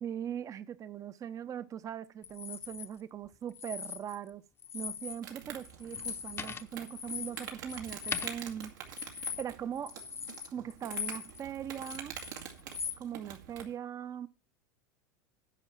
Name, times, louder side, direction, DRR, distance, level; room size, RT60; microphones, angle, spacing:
voice 1, 0.0-4.4 4.7-10.0 10.5-12.1 13.0-14.3, right 9 dB, 35° right, 0.8 m, -40 dB
sound 1, 2.2-2.9 3.5-4.3 4.6-5.2 5.5-11.4 11.7-13.0, left 7 dB, 25° left, 0.8 m, -40 dB
Insect, 5.2-13.7, right 8 dB, 85° right, 2.1 m, -46 dB
10.0 x 5.8 x 7.3 m
hypercardioid pair, 105°, 10 cm